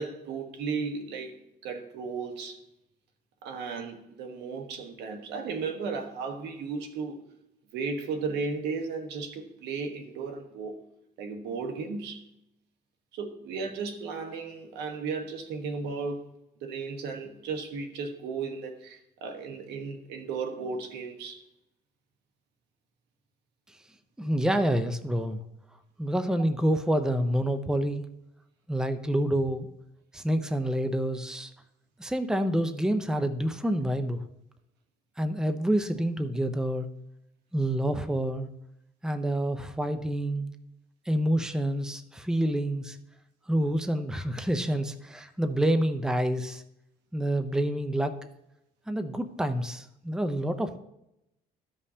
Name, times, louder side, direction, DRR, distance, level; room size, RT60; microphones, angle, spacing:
voice 1, 0.0-2.6 3.4-7.2 7.7-10.8 11.2-12.2 13.1-16.3 16.6-21.4, right 4 dB, 85° right, 6 dB, 1.3 m, -35 dB
voice 2, 24.2-25.4 26.0-28.1 28.7-29.7 30.1-31.5 32.0-34.2 35.2-36.9 37.5-38.5 39.0-40.5 41.1-43.0 43.5-46.6 47.1-48.1 48.9-50.8, right 1 dB, 5° right, 9 dB, 0.7 m, -27 dB
14.0 x 5.4 x 2.8 m, 0.82 s
cardioid pair, 110°, 17 cm